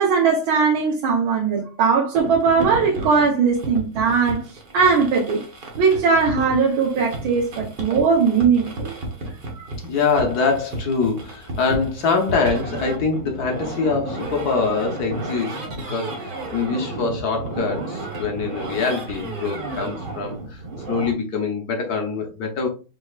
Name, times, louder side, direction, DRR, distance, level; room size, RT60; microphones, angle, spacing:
voice 1, 0.0-5.4 5.8-8.9 9.5-9.7, right 5 dB, 75° right, 1.7 m, -19 dB
sound 1, 2.1-21.1, right 2 dB, 40° right, 0.7 m, -32 dB
voice 2, 9.8-20.6 20.9-22.7, left 4 dB, 60° left, 1.1 m, -24 dB
5.3 x 3.4 x 2.4 m
omnidirectional pair, 2.4 m